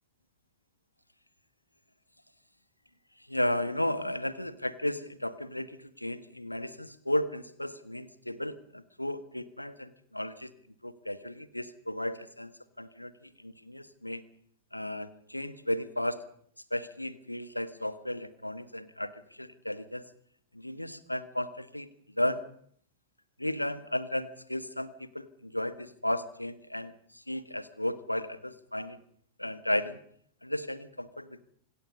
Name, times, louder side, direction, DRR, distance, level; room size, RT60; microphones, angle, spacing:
voice 1, 3.3-10.5 10.8-12.5 12.8-14.2 14.7-16.2 16.7-20.0 20.5-21.9 22.2-22.4 23.4-29.0 29.4-30.0 30.4-31.4, left 1 dB, 85° left, 13 dB, 1.5 m, -34 dB
26.5 x 21.0 x 5.4 m, 0.62 s
figure-of-eight pair, 90°, 0 cm